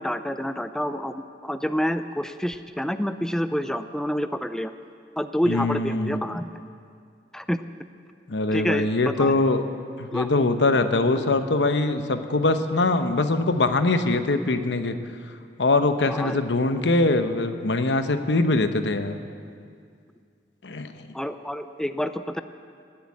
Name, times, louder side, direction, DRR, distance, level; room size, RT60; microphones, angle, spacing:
voice 1, 0.0-4.7 5.2-6.5 7.3-7.6 8.5-9.3 10.1-10.3 16.1-16.4 21.1-22.4, equal, 5° left, 10 dB, 0.4 m, -28 dB
voice 2, 5.5-6.2 8.3-9.7 10.0-14.9 15.6-19.2 20.6-20.9, left 2 dB, 75° left, 9 dB, 0.9 m, -22 dB
19.5 x 8.0 x 8.5 m, 2.3 s
head